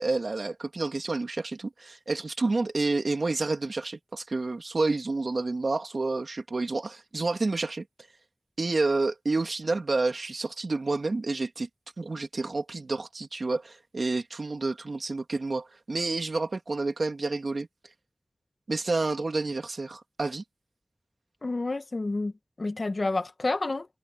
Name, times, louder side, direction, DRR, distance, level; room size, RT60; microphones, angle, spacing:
voice 1, 0.0-7.8 8.6-11.7 12.0-17.7 18.7-20.4, right 3 dB, 75° right, 3.0 m, -29 dB
voice 2, 21.4-22.3 22.6-23.9, left 2 dB, 60° left, 1.9 m, -29 dB
wide cardioid pair, 50°, 0 cm